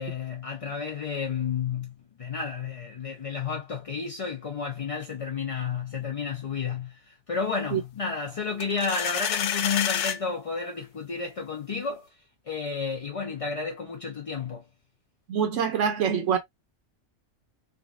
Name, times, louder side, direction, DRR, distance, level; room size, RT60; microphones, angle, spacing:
voice 1, 0.0-12.1 12.5-14.6, left 5 dB, 50° left, 0.4 m, -31 dB
sound 1, 8.6-10.2, left 9 dB, 70° left, 0.9 m, -28 dB
voice 2, 15.3-16.4, right 7 dB, 75° right, 0.9 m, -25 dB
3.5 x 2.2 x 2.4 m
omnidirectional pair, 1.3 m